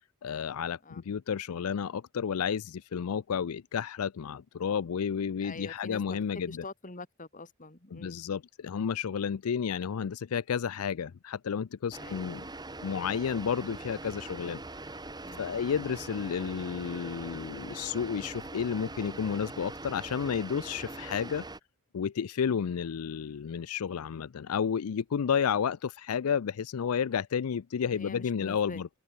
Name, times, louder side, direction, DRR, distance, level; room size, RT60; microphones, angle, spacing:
voice 1, 0.2-6.6 7.9-12.4 12.8-14.6 14.9-15.0 15.4-21.5 21.9-28.9, left 7 dB, 80° left, 0.4 m, -31 dB
voice 2, 5.4-6.2 6.5-8.2 12.0-12.2 15.2-15.4 22.5-22.7 27.9-28.8, left 3 dB, 35° left, 2.5 m, -45 dB
sound 1, 11.9-21.6, right 2 dB, 20° right, 2.3 m, -42 dB
head